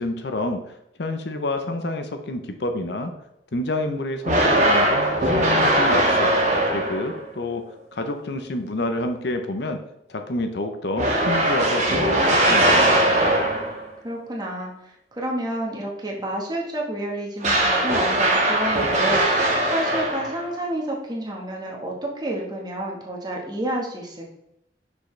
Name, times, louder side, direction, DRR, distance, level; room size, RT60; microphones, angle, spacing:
voice 1, 0.0-3.1 3.5-6.3 6.7-7.6 7.9-9.8 10.1-12.9, left 2 dB, 65° left, 6 dB, 0.7 m, -28 dB
sound 1, 4.2-7.2 11.0-13.9 17.4-20.5, right 1 dB, 40° right, 1.6 m, -20 dB
voice 2, 14.0-14.7 15.2-24.3, right 1 dB, 20° right, -1 dB, 1.3 m, -29 dB
6.3 x 5.4 x 3.2 m, 0.82 s
head